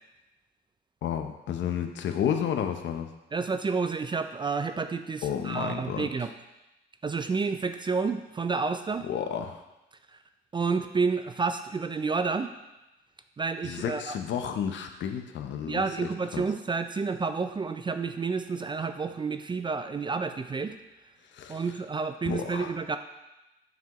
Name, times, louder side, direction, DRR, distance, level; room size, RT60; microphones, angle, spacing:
voice 1, 1.0-3.1 5.2-6.1 9.0-9.6 13.6-16.4 21.3-21.6 22.2-22.7, left 8 dB, 70° left, 6 dB, 0.7 m, -31 dB
voice 2, 3.3-6.3 7.0-9.1 10.5-12.5 13.4-14.2 15.7-20.7 21.5-23.0, right 4 dB, 25° right, 8 dB, 0.3 m, -30 dB
7.2 x 5.9 x 3.0 m, 0.99 s
cardioid pair, 90°, 20 cm